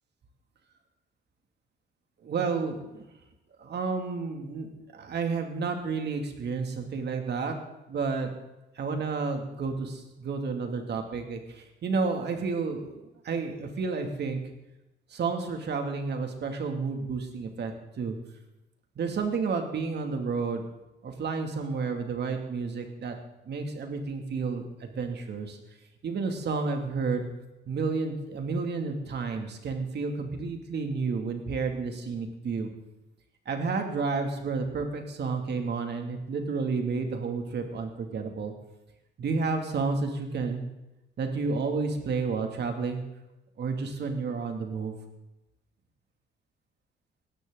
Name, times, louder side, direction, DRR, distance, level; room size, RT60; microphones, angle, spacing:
voice 1, 2.2-3.1 3.6-7.6 7.9-8.3 8.8-14.4 15.1-18.2 19.0-20.6 21.0-23.2 23.5-25.6 26.0-27.3 27.7-32.7 33.5-38.5 39.2-40.6 41.2-43.0 43.6-45.0, right 4 dB, 60° right, 4 dB, 2.6 m, -31 dB
17.5 x 13.5 x 4.0 m, 0.98 s
cardioid pair, 90°, 20 cm